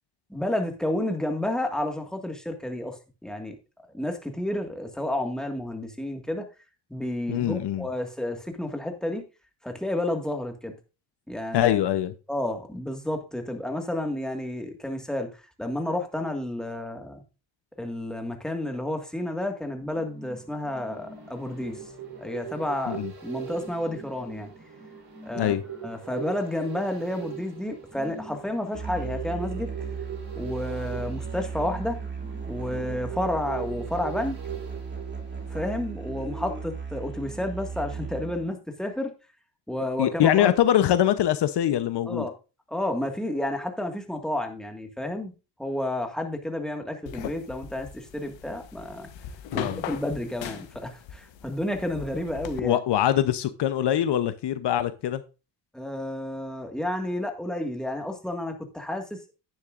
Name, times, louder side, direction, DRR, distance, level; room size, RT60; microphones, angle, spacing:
voice 1, 0.3-3.6 3.9-6.5 6.9-9.2 9.6-10.7 11.3-11.7 12.3-15.3 15.6-17.2 17.8-21.8 22.2-24.5 25.2-25.5 25.8-29.7 30.3-32.0 32.5-34.4 35.5-39.1 39.7-40.5 42.1-42.3 42.7-45.3 45.6-49.1 49.5-52.8 55.7-59.3, left 1 dB, ahead, 4 dB, 1.7 m, -31 dB
voice 2, 7.3-7.9 11.5-12.1 22.9-23.1 25.4-25.6 40.0-42.3 49.5-49.8 52.6-55.2, left 11 dB, 65° left, 12 dB, 0.8 m, -23 dB
sound 1, 19.8-36.0 36.4-36.5, right 7 dB, 55° right, 3.6 m, -41 dB
Musical instrument, 28.7-38.5, right 5 dB, 25° right, 2.7 m, -36 dB
sound 2, 47.1-52.6, left 9 dB, 85° left, 1.1 m, -39 dB
10.5 x 9.6 x 2.5 m, 0.31 s
cardioid pair, 95°, 44 cm